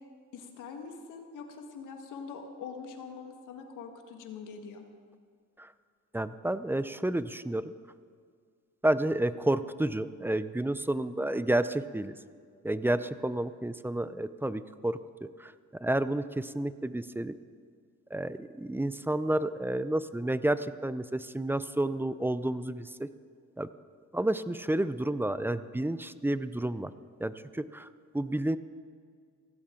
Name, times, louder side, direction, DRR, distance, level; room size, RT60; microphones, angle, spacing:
voice 1, 0.3-4.8, left 5 dB, 85° left, 5 dB, 1.7 m, -43 dB
voice 2, 6.1-7.7 8.8-12.1 12.6-15.0 15.4-15.5 15.8-17.3 18.1-23.1 23.6-23.7 24.1-26.9 27.2-27.9 28.1-28.6, right 1 dB, 5° right, 14 dB, 0.5 m, -30 dB
17.5 x 15.5 x 3.8 m, 2.1 s
cardioid pair, 90°, 30 cm